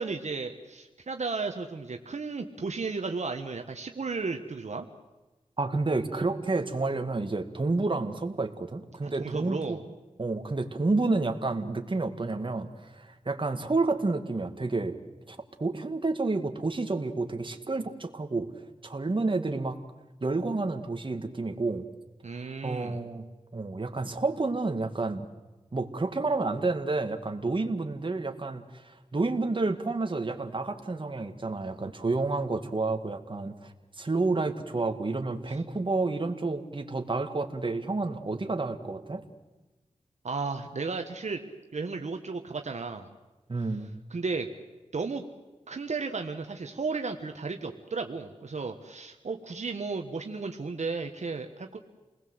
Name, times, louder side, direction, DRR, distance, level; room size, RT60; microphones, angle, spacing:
voice 1, 0.0-4.9 9.0-9.8 22.2-23.0 35.5-35.6 40.2-41.4 41.7-43.1 44.1-44.5 44.9-45.2 45.7-51.8, right 4 dB, 65° right, 5 dB, 1.5 m, -34 dB
voice 2, 5.6-9.8 10.2-15.0 15.3-18.5 18.8-19.8 20.2-21.9 22.6-23.3 23.5-25.3 25.7-33.7 34.0-39.2 43.5-43.9, right 3 dB, 40° right, 6 dB, 2.1 m, -30 dB
29.0 x 20.0 x 8.0 m, 1.1 s
wide cardioid pair, 80°, 13 cm